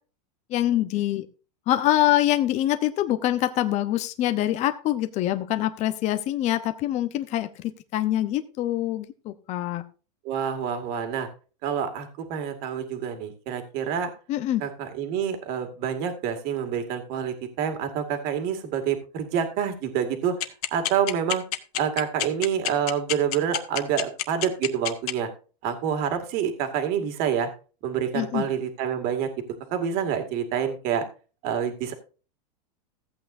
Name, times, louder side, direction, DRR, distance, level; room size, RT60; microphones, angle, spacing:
voice 1, 0.5-1.3 1.7-9.8 14.3-14.6 28.1-28.4, left 13 dB, 35° left, 9 dB, 0.8 m, -25 dB
voice 2, 10.2-11.3 11.6-14.1 14.6-20.4 20.7-21.4 21.8-25.3 25.6-27.5 27.8-29.3 29.7-31.0 31.4-31.9, right 8 dB, 45° right, 6 dB, 2.1 m, -27 dB
sound 1, 20.4-25.1, left 15 dB, 65° left, 1.2 m, -26 dB
15.0 x 8.6 x 2.6 m, 0.35 s
supercardioid pair, 140°, 21 cm